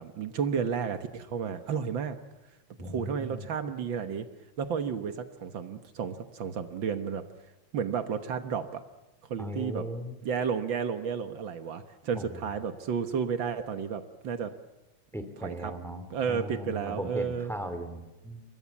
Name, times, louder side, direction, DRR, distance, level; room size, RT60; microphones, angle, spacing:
voice 1, 0.0-2.2 2.8-4.3 4.6-7.2 7.7-8.8 9.3-9.9 10.2-14.5 15.4-15.7 16.1-17.5, right 6 dB, 70° right, 9 dB, 2.0 m, -32 dB
voice 2, 2.8-3.5 9.4-10.2 12.1-12.4 15.1-18.4, equal, ahead, 8 dB, 2.6 m, -38 dB
29.0 x 22.5 x 7.2 m, 1.0 s
omnidirectional pair, 2.2 m